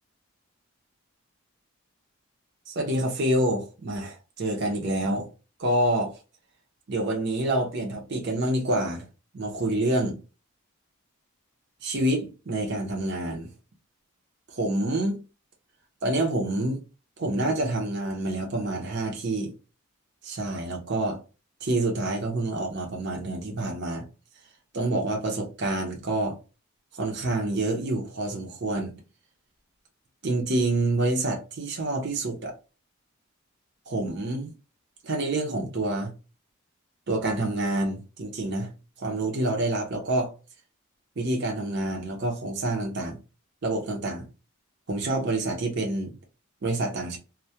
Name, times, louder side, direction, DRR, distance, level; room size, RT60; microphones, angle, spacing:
voice 1, 2.7-5.3 5.6-6.2 6.9-9.1 9.3-10.2 11.8-13.5 14.5-15.2 16.0-16.8 17.2-19.5 20.2-21.2 21.6-24.1 24.7-26.4 26.9-28.9 30.2-32.5 33.9-34.5 35.0-36.1 37.1-38.7 39.0-40.3 41.2-43.2 43.6-44.3 44.9-46.1 46.6-47.2, right 1 dB, 50° right, 0.6 m, -27 dB
2.2 x 2.1 x 2.7 m
head